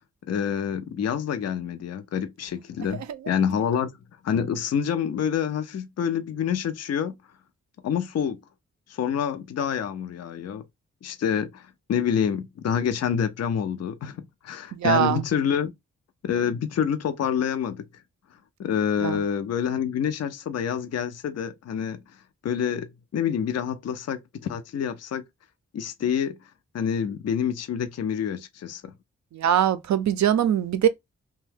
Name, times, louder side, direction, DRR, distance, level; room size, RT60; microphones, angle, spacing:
voice 1, 0.3-3.9 4.2-7.1 7.8-8.4 8.9-10.6 11.0-15.7 16.2-17.8 18.6-22.0 22.4-25.2 25.7-26.4 26.7-28.9, left 8 dB, 55° left, 0.5 m, -27 dB
voice 2, 14.7-15.2 19.0-19.2 29.3-30.9, right 10 dB, 65° right, 0.5 m, -22 dB
2.6 x 2.2 x 3.3 m
cardioid pair, 45°, 31 cm